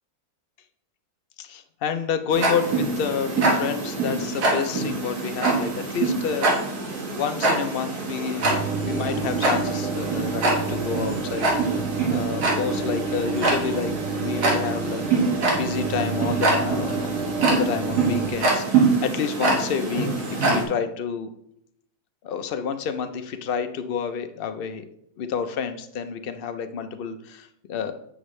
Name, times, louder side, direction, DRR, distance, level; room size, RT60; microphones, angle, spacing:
voice 1, 1.4-6.5 7.1-11.8 12.1-17.1 17.4-21.3 22.2-24.9 25.2-27.9, left 7 dB, 70° left, 8 dB, 0.5 m, -29 dB
Tick-tock, 2.3-20.6, right 3 dB, 85° right, 2.0 m, -25 dB
sound 1, 8.4-18.3, right 5 dB, 65° right, 0.9 m, -30 dB
8.0 x 6.0 x 3.1 m, 0.75 s
omnidirectional pair, 1.6 m